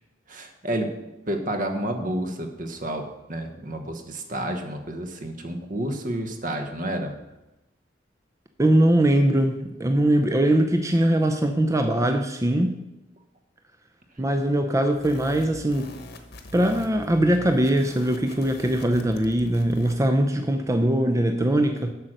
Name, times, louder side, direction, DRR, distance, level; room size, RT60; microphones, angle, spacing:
voice 1, 0.3-0.9 1.3-7.2, right 1 dB, 45° right, 5 dB, 1.1 m, -30 dB
voice 2, 8.6-12.7 14.2-15.9 16.5-21.9, right 1 dB, 15° right, 5 dB, 0.5 m, -21 dB
sound 1, 15.0-20.0, equal, 60° left, 1.1 m, -43 dB
8.2 x 6.1 x 6.5 m, 0.97 s
head